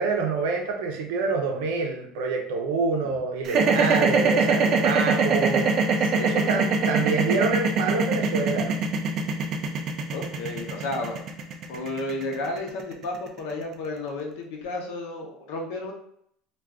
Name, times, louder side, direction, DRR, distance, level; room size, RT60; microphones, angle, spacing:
voice 1, 0.0-5.7 6.1-8.8, right 4 dB, 90° right, 2 dB, 0.6 m, -27 dB
sound 1, 3.4-13.6, right 4 dB, 40° right, 0.4 m, -22 dB
voice 2, 6.1-6.5 10.1-11.2 11.7-15.9, left 2 dB, 80° left, 1 dB, 0.7 m, -32 dB
2.4 x 2.3 x 3.5 m, 0.68 s
cardioid pair, 150°, 0 cm